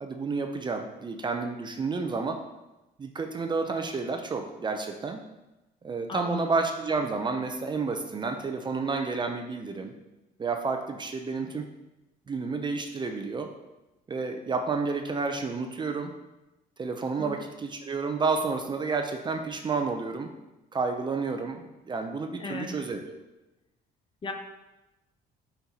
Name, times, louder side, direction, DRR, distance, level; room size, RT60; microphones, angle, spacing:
voice 1, 0.0-2.4 3.0-5.2 5.8-9.9 10.4-11.7 12.3-13.5 14.1-16.1 16.8-20.3 20.7-23.1, right 4 dB, 25° right, 5 dB, 0.5 m, -30 dB
voice 2, 6.1-6.6 17.2-17.3 22.4-22.7 24.2-24.3, left 3 dB, 30° left, 4 dB, 0.8 m, -35 dB
7.8 x 4.5 x 2.8 m, 1.0 s
cardioid pair, 110°, 17 cm